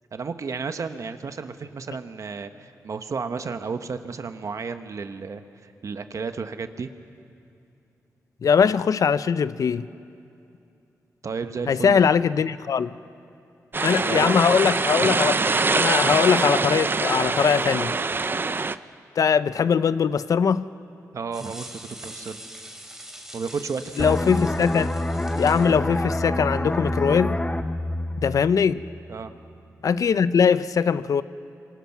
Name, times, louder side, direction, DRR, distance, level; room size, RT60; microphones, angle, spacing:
voice 1, 0.1-6.9 11.2-12.1 14.0-14.4 21.1-22.4 23.3-24.2 29.1-29.3, right 5 dB, 60° right, 9 dB, 1.2 m, -32 dB
voice 2, 8.4-9.9 11.7-12.9 13.8-17.9 19.2-20.7 24.0-24.9 25.3-27.4 28.2-28.8 29.8-31.2, left 6 dB, 65° left, 15 dB, 0.6 m, -21 dB
sound 1, 13.7-18.8, right 3 dB, 35° right, 0.6 m, -23 dB
sound 2, 21.3-25.8, right 1 dB, 10° right, 2.9 m, -43 dB
sound 3, 24.0-29.4 29.7-30.0, left 1 dB, 20° left, 1.0 m, -27 dB
26.5 x 25.0 x 6.1 m, 2.6 s
cardioid pair, 65°, 6 cm